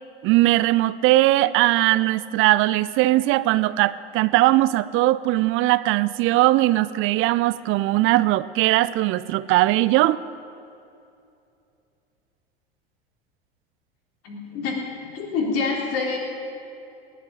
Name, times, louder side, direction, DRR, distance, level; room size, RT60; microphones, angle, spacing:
voice 1, 0.2-10.2, right 17 dB, 45° right, 17 dB, 0.5 m, -20 dB
voice 2, 14.2-14.8 15.1-16.2, left 4 dB, 50° left, -2 dB, 3.7 m, -26 dB
18.5 x 6.6 x 9.3 m, 2.6 s
hypercardioid pair, 80°, 30 cm